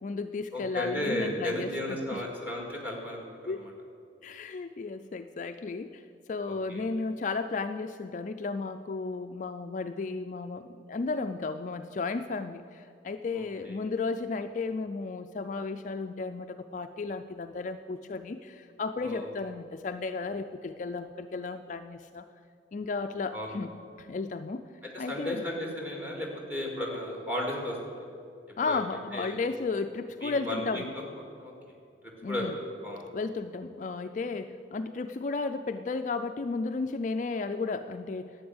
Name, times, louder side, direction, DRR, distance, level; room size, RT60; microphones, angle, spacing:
voice 1, 0.0-2.2 3.5-3.6 4.2-22.2 22.7-23.7 24.0-24.6 25.0-25.4 28.6-30.9 32.2-32.5 33.1-38.5, left 4 dB, 40° left, 8 dB, 0.3 m, -34 dB
voice 2, 0.5-3.7 6.5-6.8 13.3-13.8 19.0-19.3 23.3-23.5 24.9-27.8 28.6-28.8 29.1-29.4 30.2-31.0 31.4-31.5 32.3-32.5 32.8-33.1, left 1 dB, 10° right, 0 dB, 2.1 m, -34 dB
11.5 x 8.6 x 7.9 m, 2.5 s
head